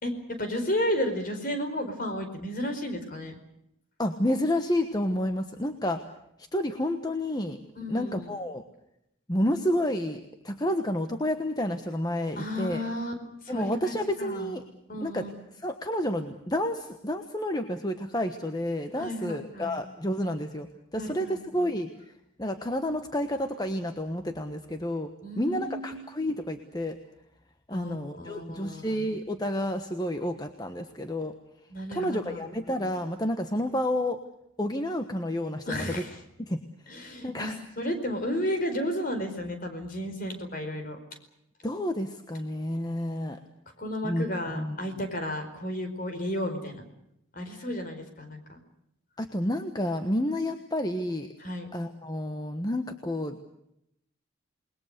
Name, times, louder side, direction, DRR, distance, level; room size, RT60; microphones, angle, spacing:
voice 1, 0.0-3.4 7.7-8.3 12.4-13.1 13.4-14.5 14.9-15.3 19.0-19.8 21.0-21.7 25.2-25.9 27.7-29.0 31.7-32.4 35.7-36.2 36.9-41.0 43.8-46.8 47.3-48.6 51.4-51.7, equal, 40° left, 6 dB, 4.7 m, -33 dB
voice 2, 4.0-6.0 6.4-7.6 7.9-8.6 9.3-12.9 13.5-14.6 15.0-15.3 15.5-20.7 20.9-21.9 22.4-25.1 25.4-27.0 27.7-31.3 31.9-34.2 34.6-36.0 36.5-36.6 37.2-37.6 41.6-43.4 44.0-44.3 44.5-44.8 47.5-47.6 49.2-51.3 51.7-53.4, left 1 dB, 20° left, 7 dB, 1.2 m, -30 dB
28.5 x 21.0 x 6.7 m, 0.79 s
head